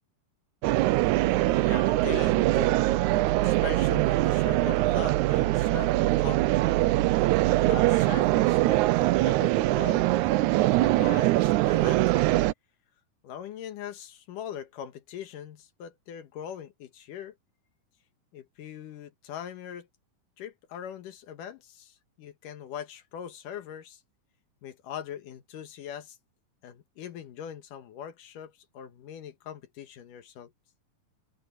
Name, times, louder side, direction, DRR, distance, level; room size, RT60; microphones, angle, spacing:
sound 1, 0.6-12.5, right 17 dB, 80° right, 1.8 m, -23 dB
voice 1, 1.6-2.8 3.4-6.4 7.5-10.1 10.6-12.3 13.2-17.3 18.3-19.9 20.4-24.0 24.6-26.2 26.6-30.5, left 9 dB, 75° left, 2.9 m, -41 dB
open air
omnidirectional pair, 3.8 m